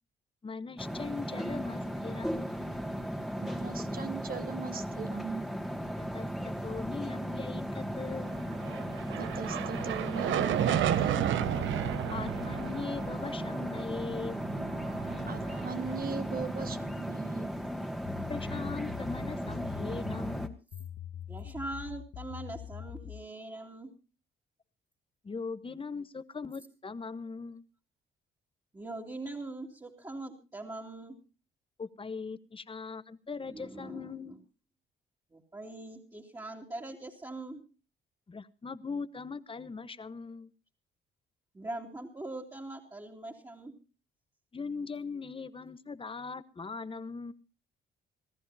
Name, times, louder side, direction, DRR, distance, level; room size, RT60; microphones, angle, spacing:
voice 1, 0.4-2.6 6.0-8.3 12.1-14.4 18.3-20.5 25.2-27.6 31.8-34.3 38.3-40.5 44.5-47.3, left 4 dB, 25° left, 14 dB, 1.1 m, -40 dB
sound 1, 0.8-20.5, equal, ahead, 2.0 m, -36 dB
voice 2, 3.4-5.5 9.2-11.2 15.3-17.5, right 6 dB, 45° right, 9 dB, 1.5 m, -39 dB
sound 2, 8.4-16.8, right 11 dB, 75° right, 1.0 m, -33 dB
sound 3, 18.1-23.3, left 11 dB, 70° left, 1.6 m, -43 dB
voice 3, 21.3-23.9 28.7-31.1 33.5-34.4 35.3-37.6 41.5-43.8, right 2 dB, 15° right, -3 dB, 2.8 m, -42 dB
27.0 x 14.5 x 2.8 m, 0.31 s
cardioid pair, 90°, 20 cm